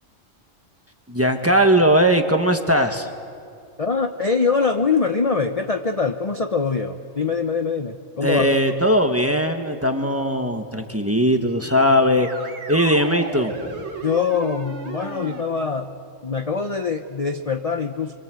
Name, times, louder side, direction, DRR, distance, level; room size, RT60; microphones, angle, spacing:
voice 1, 1.1-3.1 8.2-12.3 12.7-13.5, equal, 10° right, 5 dB, 1.4 m, -19 dB
voice 2, 3.8-8.6 14.0-15.9 16.2-18.1, left 5 dB, 35° left, 6 dB, 0.8 m, -23 dB
sound 1, 11.6-15.4, right 3 dB, 55° right, 1.9 m, -35 dB
26.5 x 24.0 x 7.7 m, 2.3 s
omnidirectional pair, 1.4 m